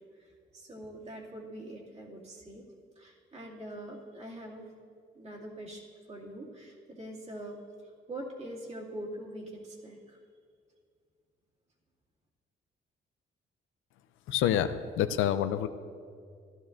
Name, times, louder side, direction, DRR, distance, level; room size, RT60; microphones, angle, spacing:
voice 1, 0.1-2.6 3.0-4.7 5.1-5.8 6.1-10.2, right 1 dB, 35° right, -4 dB, 2.4 m, -43 dB
voice 2, 14.3-15.7, left 10 dB, 85° left, 11 dB, 0.5 m, -27 dB
14.0 x 11.5 x 2.6 m, 2.2 s
cardioid pair, 90°, 20 cm